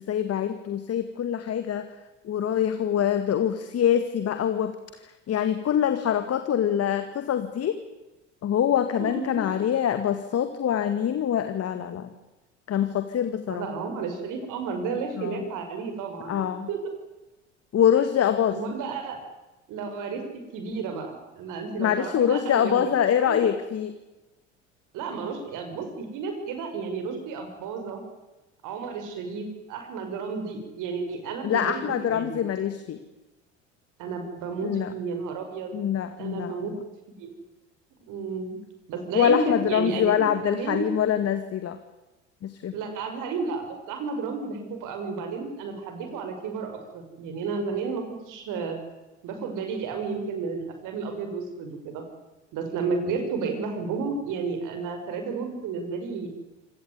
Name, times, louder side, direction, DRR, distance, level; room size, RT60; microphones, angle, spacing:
voice 1, 0.0-1.9 2.2-4.7 5.3-7.8 8.4-12.1 12.7-13.7 15.2-15.4 16.3-16.7 17.7-18.6 21.8-23.9 31.4-33.0 34.6-34.9 35.7-36.5 39.1-41.8 42.4-42.7, left 9 dB, 40° left, 9 dB, 2.1 m, -24 dB
voice 2, 9.0-9.5 13.5-16.8 18.5-19.2 19.7-20.2 20.5-23.5 24.9-28.0 28.6-32.4 34.0-35.8 36.2-36.7 37.1-37.3 38.1-38.6 38.9-40.9 42.7-48.8 49.2-52.0 52.5-56.3, right 4 dB, 55° right, 6 dB, 6.0 m, -32 dB
26.0 x 17.5 x 9.6 m, 1.1 s
hypercardioid pair, 70°, 36 cm